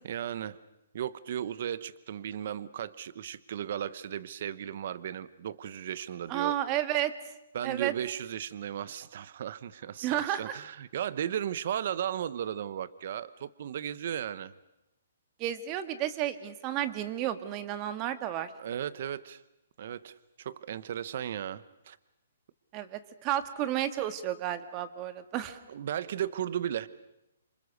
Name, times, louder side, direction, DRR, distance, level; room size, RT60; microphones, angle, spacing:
voice 1, 0.0-0.6 0.9-6.6 7.5-14.5 18.6-19.4 19.8-22.0 25.7-26.9, right 10 dB, 50° right, 17 dB, 0.9 m, -35 dB
voice 2, 6.3-7.1 7.6-7.9 10.0-10.6 15.4-18.5 22.7-25.6, right 12 dB, 25° right, 10 dB, 1.6 m, -32 dB
28.0 x 26.5 x 6.6 m, 0.89 s
hypercardioid pair, 160°, 0 cm